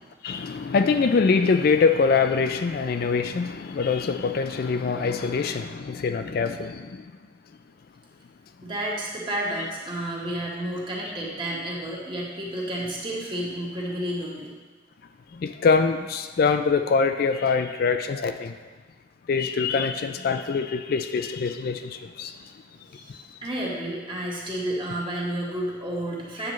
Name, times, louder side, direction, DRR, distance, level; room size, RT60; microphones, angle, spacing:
voice 1, 0.2-7.0 15.3-18.5 19.3-22.3 23.1-23.2, left 5 dB, 50° left, 8 dB, 0.3 m, -24 dB
voice 2, 8.6-14.5 22.9-26.5, right 1 dB, 25° right, -4 dB, 1.4 m, -31 dB
9.5 x 7.5 x 3.1 m, 1.4 s
head